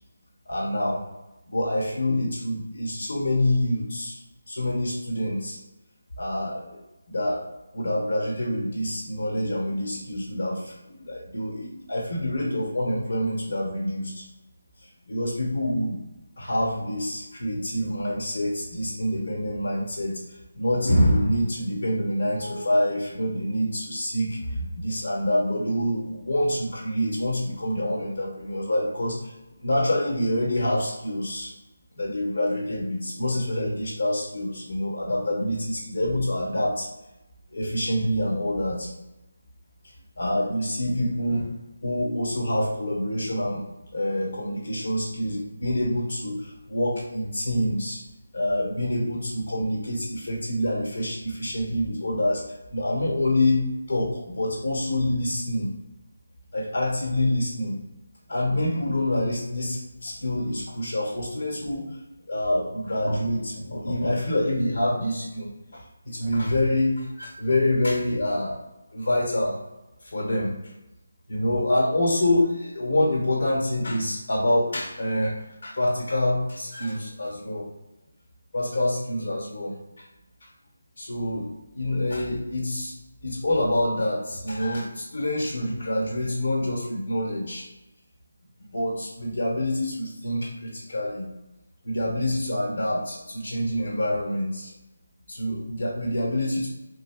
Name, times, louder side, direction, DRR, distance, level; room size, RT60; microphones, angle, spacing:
voice 1, 0.5-1.0 1.5-4.2 4.5-5.6 6.2-6.8 7.1-7.4 7.7-14.2 15.1-16.0 16.4-20.2 20.5-29.3 29.6-31.5 31.9-36.9 37.5-38.9 40.2-41.5 41.8-43.6 43.9-48.0 48.3-52.4 52.7-55.7 56.5-57.7 58.3-61.9 62.3-68.6 68.9-69.6 70.1-70.6 71.3-75.3 75.6-77.7 78.5-79.7 81.0-82.9 83.2-87.7 88.7-91.3 91.8-94.7 95.3-96.7, left 1 dB, 50° left, -2 dB, 1.2 m, -26 dB
3.3 x 2.2 x 3.5 m, 0.97 s
figure-of-eight pair, 175°, 0 cm